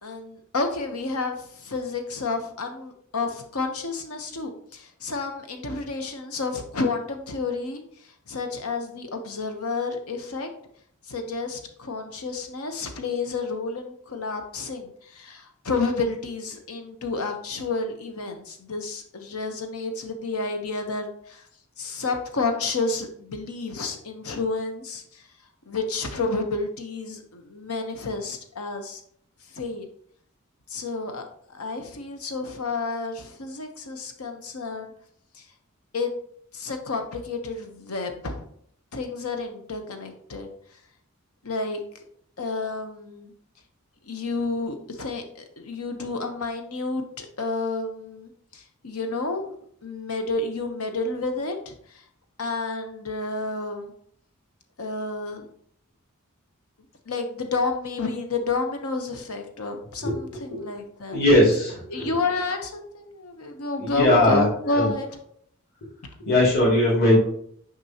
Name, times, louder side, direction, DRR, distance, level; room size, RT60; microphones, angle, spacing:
voice 1, 0.0-7.8 8.3-10.5 11.1-21.4 21.8-25.2 25.6-29.0 29.5-29.9 30.7-34.9 35.3-35.4 35.9-36.1 36.5-38.4 38.9-40.5 41.4-41.8 42.4-43.3 44.0-49.5 49.8-52.0 52.4-53.9 54.8-55.5 57.1-61.2 61.5-61.6 61.9-65.1, left 3 dB, 85° left, 5 dB, 1.0 m, -30 dB
voice 2, 60.0-60.6 61.1-62.1 63.8-64.5 64.7-64.9 66.3-67.2, left 1 dB, 45° left, -6 dB, 2.3 m, -20 dB
6.6 x 5.2 x 2.9 m, 0.65 s
head